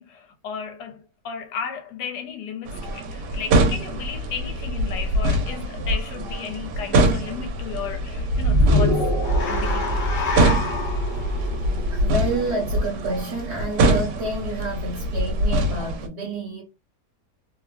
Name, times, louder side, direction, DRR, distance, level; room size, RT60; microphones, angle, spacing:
voice 1, 0.0-9.0 9.5-9.9, left 7 dB, 75° left, 1.2 m, -34 dB
sound 1, 2.7-16.1, right 1 dB, 85° right, 1.2 m, -24 dB
sound 2, 8.3-12.7, equal, 55° left, 0.6 m, -24 dB
voice 2, 11.9-16.6, right 2 dB, 50° right, 0.9 m, -29 dB
3.0 x 2.3 x 2.2 m
omnidirectional pair, 1.8 m